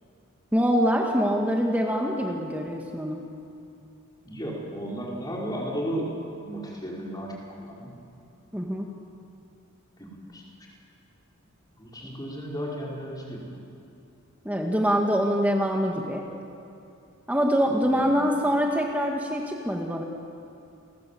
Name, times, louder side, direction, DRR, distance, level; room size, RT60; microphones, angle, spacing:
voice 1, 0.5-3.3 8.5-8.9 14.5-16.2 17.3-20.0, equal, 5° right, 0 dB, 1.9 m, -24 dB
voice 2, 4.2-7.9 10.0-10.4 11.8-13.4 17.9-18.1, equal, 20° left, -4 dB, 5.4 m, -34 dB
30.0 x 21.0 x 8.6 m, 2.7 s
head